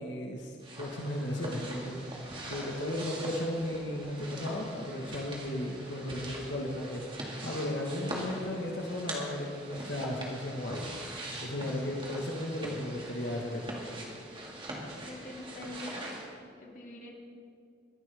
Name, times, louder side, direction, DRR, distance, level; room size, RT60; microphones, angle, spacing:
voice 1, 0.0-10.9 11.4-13.8, left 1 dB, 75° left, -1 dB, 1.4 m, -35 dB
sound 1, 0.6-16.3, right 1 dB, 25° right, 2.0 m, -42 dB
voice 2, 15.0-16.1 16.5-17.1, left 2 dB, 45° left, -2 dB, 2.3 m, -44 dB
22.5 x 11.5 x 3.5 m, 2.3 s
head